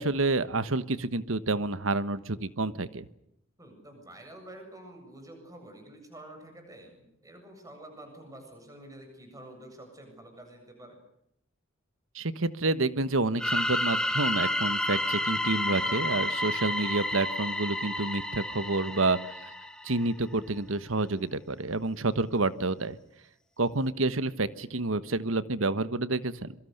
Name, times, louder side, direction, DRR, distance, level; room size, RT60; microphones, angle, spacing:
voice 1, 0.0-3.1 12.1-19.5 19.8-23.0 23.6-26.5, right 2 dB, 80° right, 14 dB, 1.3 m, -29 dB
voice 2, 3.6-11.0 18.9-19.1, right 1 dB, 15° right, 5 dB, 7.6 m, -48 dB
sound 1, 13.4-20.0, left 1 dB, 5° left, 2.2 m, -30 dB
27.0 x 23.5 x 6.7 m, 0.76 s
head